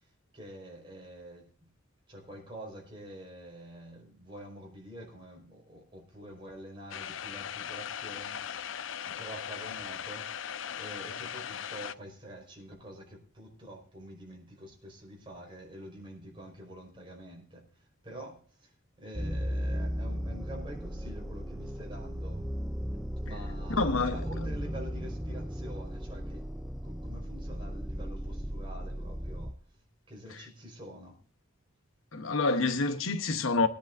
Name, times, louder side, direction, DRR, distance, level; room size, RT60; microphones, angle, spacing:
voice 1, 0.0-1.7 2.1-8.7 9.0-10.4 10.7-22.5 23.2-26.5 26.8-29.6 30.1-31.2, right 1 dB, 25° right, 4.8 m, -47 dB
sound 1, 6.9-11.9, left 8 dB, 65° left, 0.5 m, -39 dB
sound 2, 19.1-29.5, equal, ahead, 0.5 m, -36 dB
voice 2, 23.7-24.2 32.1-33.7, left 3 dB, 85° left, 1.0 m, -27 dB
23.0 x 10.5 x 2.6 m
head